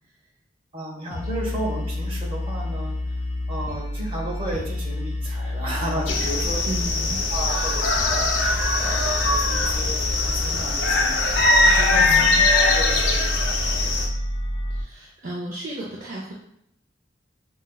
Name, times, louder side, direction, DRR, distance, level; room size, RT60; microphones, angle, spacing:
voice 1, 0.7-2.9 3.5-6.6 7.3-9.9 10.2-11.2 11.6-12.0 12.6-13.8, right 1 dB, 30° right, -3 dB, 0.9 m, -33 dB
sound 1, 1.1-14.8, left 1 dB, 35° left, 0.3 m, -29 dB
sound 2, 6.1-14.1, left 2 dB, 90° left, 0.5 m, -21 dB
voice 2, 6.7-7.2 12.0-12.5 14.7-16.3, right 1 dB, 50° right, -4 dB, 0.5 m, -33 dB
5.1 x 2.0 x 2.3 m, 0.74 s
head